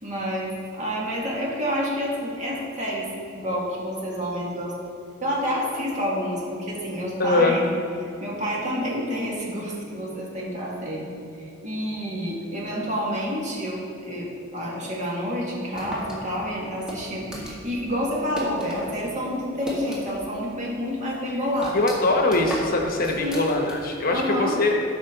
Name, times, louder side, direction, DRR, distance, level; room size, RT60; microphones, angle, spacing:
voice 1, 0.0-3.1 3.3-4.7 5.2-7.7 8.2-11.1 11.4-21.8 23.2-23.5 24.1-24.6, equal, 40° right, -4 dB, 2.0 m, -28 dB
voice 2, 7.2-7.6 21.7-24.7, left 2 dB, 50° left, 2 dB, 1.0 m, -22 dB
sound 1, 15.7-18.8 19.1-20.4 20.7-20.8 21.2-24.0, equal, 5° right, 1.8 m, -36 dB
13.5 x 5.5 x 3.9 m, 2.7 s
head